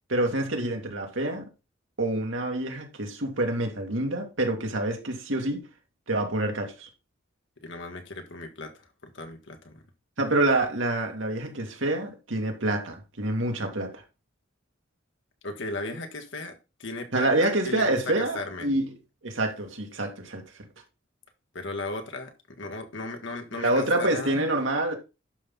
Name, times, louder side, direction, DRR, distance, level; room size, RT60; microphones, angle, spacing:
voice 1, 0.1-1.5 2.0-5.7 6.1-6.9 10.2-14.0 17.1-18.9 19.2-20.4 23.5-24.9, right 2 dB, 70° right, 2.2 m, -27 dB
voice 2, 7.6-9.8 15.4-18.7 21.5-24.5, left 2 dB, 70° left, 1.7 m, -36 dB
11.5 x 5.7 x 3.9 m
head